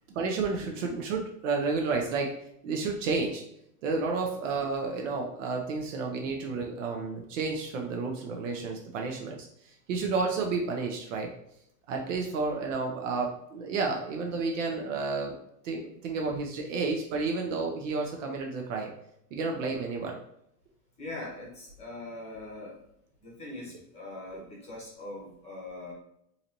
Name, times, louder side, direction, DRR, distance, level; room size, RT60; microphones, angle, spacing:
voice 1, 0.1-2.3 2.6-3.4 3.8-11.3 11.9-15.4 15.6-18.9 19.3-20.2, right 4 dB, 50° right, 1 dB, 0.6 m, -31 dB
voice 2, 21.0-22.8 23.2-25.9, left 2 dB, 15° left, -4 dB, 0.9 m, -42 dB
3.9 x 2.6 x 2.9 m, 0.76 s
supercardioid pair, 150°, 50 cm